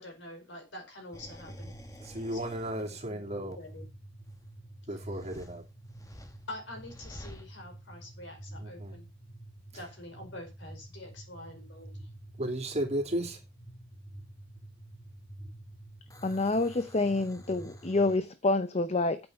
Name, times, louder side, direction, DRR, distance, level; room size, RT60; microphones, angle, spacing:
voice 1, 0.0-1.7 2.3-3.8 4.9-5.2 6.5-9.1 9.7-11.9, left 1 dB, 65° left, 4.7 m, -46 dB
sound 1, 1.1-18.2, right 1 dB, 15° left, 1.3 m, -48 dB
voice 2, 2.0-3.6 4.9-5.6 8.6-9.0 12.4-13.4, right 1 dB, 35° right, 3.0 m, -34 dB
voice 3, 16.2-19.2, left 2 dB, 35° left, 0.7 m, -27 dB
9.5 x 8.0 x 5.6 m
head